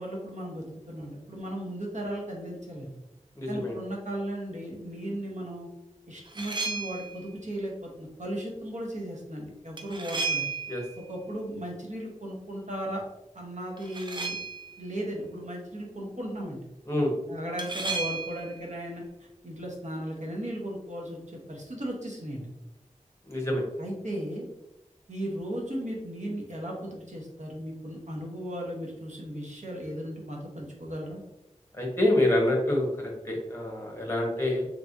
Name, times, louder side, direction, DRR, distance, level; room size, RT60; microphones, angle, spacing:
voice 1, 0.0-2.9 3.5-5.7 6.1-10.4 11.1-13.0 13.3-14.4 14.8-16.6 17.3-19.0 19.4-22.5 23.8-24.5 25.1-31.2, right 1 dB, 65° right, -2 dB, 1.0 m, -36 dB
voice 2, 3.3-3.8 10.7-10.8 16.9-17.1 23.2-23.6 31.7-34.7, left 1 dB, 20° left, -1 dB, 1.2 m, -26 dB
sound 1, 6.2-7.2 9.8-11.0 13.8-14.8 17.6-18.5, right 3 dB, 35° right, 0.5 m, -33 dB
3.5 x 3.2 x 2.6 m, 0.94 s
wide cardioid pair, 55°, 13 cm